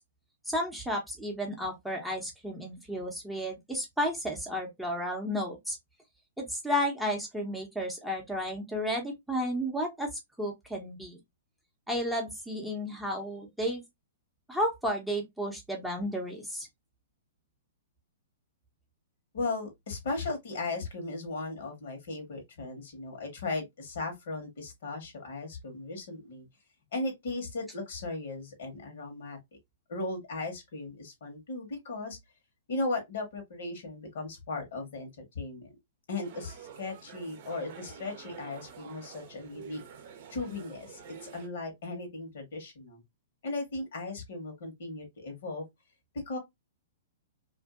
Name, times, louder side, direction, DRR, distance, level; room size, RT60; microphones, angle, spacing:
voice 1, 0.5-5.8 6.4-10.1 10.4-11.2 11.9-13.8 14.5-16.7, equal, ahead, 0.7 m, -32 dB
voice 2, 19.3-26.5 26.9-29.4 29.9-32.2 32.7-35.7 36.1-39.8 40.3-43.0 43.4-45.6 46.3-46.4, left 3 dB, 65° left, 1.3 m, -37 dB
sound 1, 36.2-41.5, right 7 dB, 50° right, 0.6 m, -48 dB
2.6 x 2.5 x 2.4 m
hypercardioid pair, 125°, 0 cm